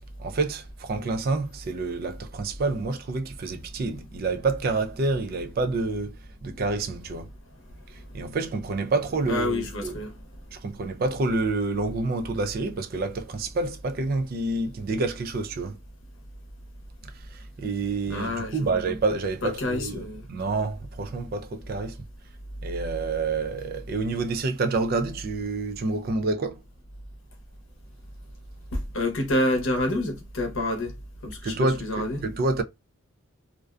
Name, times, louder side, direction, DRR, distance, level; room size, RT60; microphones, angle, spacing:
voice 1, 0.2-6.2 6.4-7.3 8.1-9.9 10.5-15.8 17.0-22.0 22.6-26.6 31.4-32.6, right 3 dB, 45° right, 0.3 m, -28 dB
voice 2, 9.3-10.2 18.1-18.8 19.4-20.3 28.7-30.9 31.2-32.2, left 1 dB, 65° left, 0.7 m, -28 dB
2.5 x 2.1 x 2.3 m
head